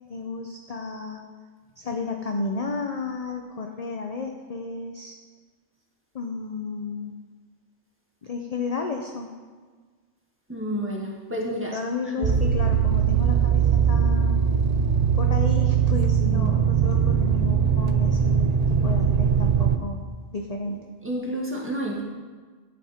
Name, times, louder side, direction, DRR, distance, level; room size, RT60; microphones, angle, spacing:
voice 1, 0.1-1.2 1.8-5.2 6.1-7.2 8.2-9.3 11.7-14.5 15.1-20.0 20.3-20.9, left 4 dB, 40° left, 3 dB, 0.7 m, -32 dB
voice 2, 10.5-11.8 12.1-12.6 16.2-16.6 20.6-20.8 21.0-22.0, equal, 10° right, -3 dB, 1.7 m, -31 dB
sound 1, 12.2-19.8, right 7 dB, 45° right, 0.5 m, -21 dB
11.0 x 8.6 x 4.4 m, 1.5 s
omnidirectional pair, 1.2 m